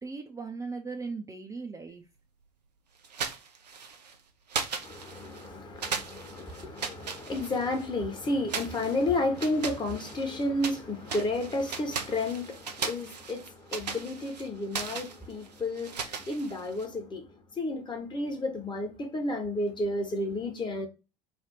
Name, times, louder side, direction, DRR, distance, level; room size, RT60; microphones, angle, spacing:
voice 1, 0.0-2.0, right 4 dB, 15° right, 0.6 m, -38 dB
monkey steps on branch shaky, 3.0-4.1 4.5-5.5 5.8-7.9 8.5-10.8 11.1-16.9, right 5 dB, 85° right, 0.6 m, -37 dB
voice 2, 4.8-17.3 17.6-20.9, left 2 dB, 20° left, 1.1 m, -32 dB
3.4 x 2.3 x 4.2 m
figure-of-eight pair, 70°, 20 cm